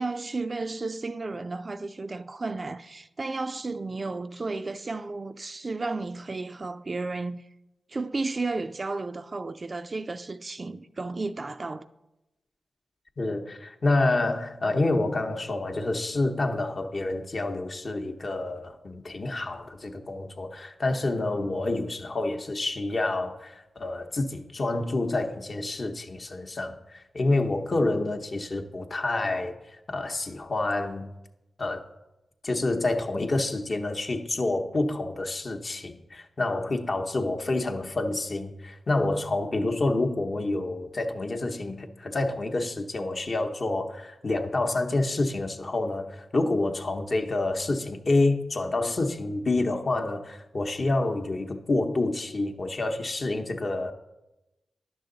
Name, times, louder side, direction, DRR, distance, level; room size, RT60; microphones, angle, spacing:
voice 1, 0.0-7.4 7.9-11.8, right 3 dB, 45° right, 0.3 m, -33 dB
voice 2, 13.2-31.1 31.6-31.9 32.4-53.9, left 2 dB, 50° left, 0.8 m, -28 dB
10.0 x 6.3 x 3.8 m
cardioid pair, 55°, 0 cm